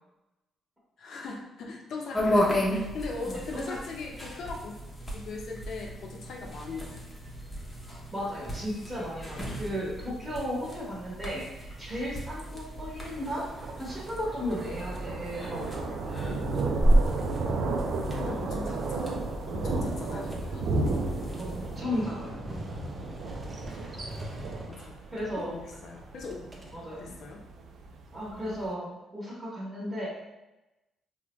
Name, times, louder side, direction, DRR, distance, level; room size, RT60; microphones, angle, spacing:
voice 1, 1.0-4.7 5.1-7.0 18.2-19.2 19.5-21.0 24.7-26.4 26.9-27.4, left 3 dB, 65° left, 0 dB, 0.6 m, -39 dB
sound 1, 2.1-21.8, equal, 15° left, 0.8 m, -33 dB
voice 2, 3.2-3.8 8.1-13.4 13.8-15.9 20.1-20.4 21.4-22.4 23.9-24.2 25.1-25.6 26.7-27.1 28.1-30.1, equal, 10° right, -7 dB, 1.1 m, -35 dB
Thunder, 11.7-28.6, right 3 dB, 70° right, 0.4 m, -34 dB
Motorcycle, 18.8-27.1, equal, 30° right, 0.6 m, -45 dB
3.4 x 2.1 x 3.0 m, 1.0 s
cardioid pair, 90°, 0 cm